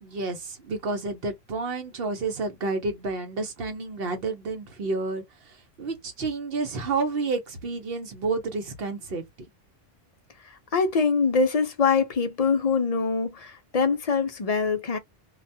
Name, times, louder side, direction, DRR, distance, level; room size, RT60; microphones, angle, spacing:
voice 1, 0.0-9.2, right 3 dB, 65° right, 0.9 m, -30 dB
voice 2, 10.4-15.0, left 5 dB, 50° left, 0.5 m, -24 dB
2.4 x 2.2 x 2.6 m
omnidirectional pair, 1.1 m